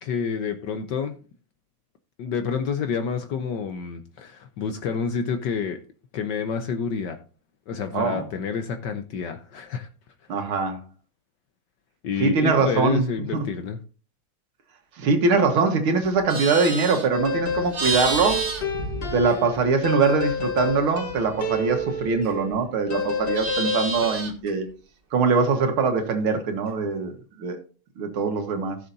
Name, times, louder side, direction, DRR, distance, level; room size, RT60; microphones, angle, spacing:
voice 1, 0.0-1.2 2.2-5.8 6.1-7.2 7.7-9.9 12.0-13.8, left 6 dB, 65° left, 1.3 m, -28 dB
voice 2, 7.9-8.2 10.3-10.8 12.2-13.4 15.0-18.4 19.1-24.7 25.1-27.1 27.4-27.6 28.0-28.8, right 4 dB, 85° right, 2.3 m, -22 dB
Livestock farm animals working animals, 16.0-19.7 20.1-22.6 22.9-24.5, right 3 dB, 30° right, 1.3 m, -31 dB
sound 1, 17.1-22.6 22.9-24.1, left 3 dB, 35° left, 1.0 m, -29 dB
15.5 x 6.8 x 2.7 m
omnidirectional pair, 2.3 m